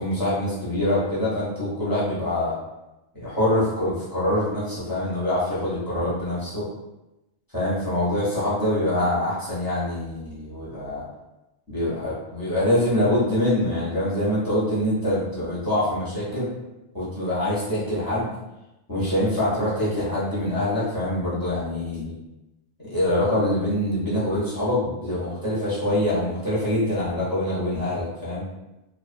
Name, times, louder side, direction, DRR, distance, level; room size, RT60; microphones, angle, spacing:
voice 1, 0.0-2.6 3.1-6.7 7.5-11.1 11.7-16.5 16.9-18.3 18.9-22.1 22.8-28.4, left 1 dB, 20° left, -10 dB, 0.7 m, -24 dB
2.4 x 2.3 x 2.5 m, 0.96 s
omnidirectional pair, 1.2 m